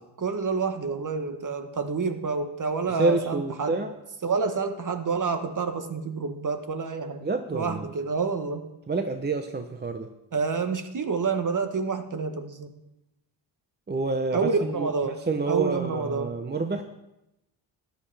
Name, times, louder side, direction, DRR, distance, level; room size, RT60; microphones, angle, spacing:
voice 1, 0.2-3.8 4.2-7.2 7.5-8.7 10.3-12.7 14.3-15.2 15.5-16.3, right 4 dB, 40° right, 8 dB, 1.2 m, -28 dB
voice 2, 2.9-3.9 7.2-7.9 8.9-10.1 13.9-14.9 15.3-16.8, right 3 dB, 20° right, 7 dB, 0.7 m, -28 dB
13.0 x 10.5 x 3.4 m, 0.90 s
cardioid pair, 70°, 50 cm